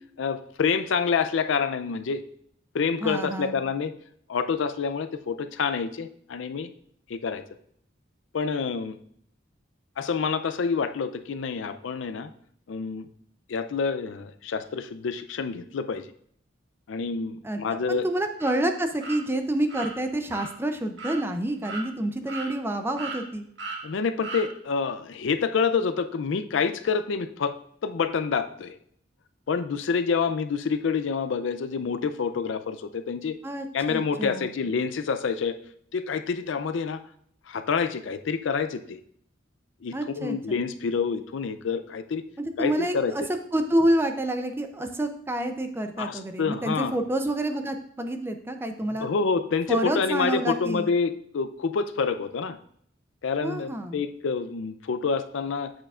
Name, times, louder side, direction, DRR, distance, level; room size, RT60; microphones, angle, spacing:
voice 1, 0.2-2.2 2.7-3.9 4.3-6.7 7.1-7.4 8.3-9.0 10.0-12.3 12.7-13.1 13.5-16.1 16.9-18.0 23.8-27.6 27.8-28.8 29.5-33.3 33.7-35.6 35.9-37.0 37.5-39.0 39.8-42.2 42.6-43.1 46.0-47.0 49.0-52.6 53.2-55.7, left 5 dB, 70° left, 10 dB, 0.4 m, -27 dB
voice 2, 3.0-3.6 17.4-17.6 17.9-23.4 33.4-34.6 39.9-40.6 42.4-43.2 43.5-49.1 49.7-50.9 53.4-54.0, right 1 dB, 10° right, 6 dB, 0.4 m, -28 dB
sound 1, 18.4-18.5 19.0-19.2 19.7-19.9 20.3-20.5 21.0-21.2 21.6-21.8 22.3-22.7 23.0-23.2 23.6-23.8 24.2-24.4, right 3 dB, 60° right, 1.3 m, -35 dB
7.7 x 6.6 x 2.4 m, 0.65 s
head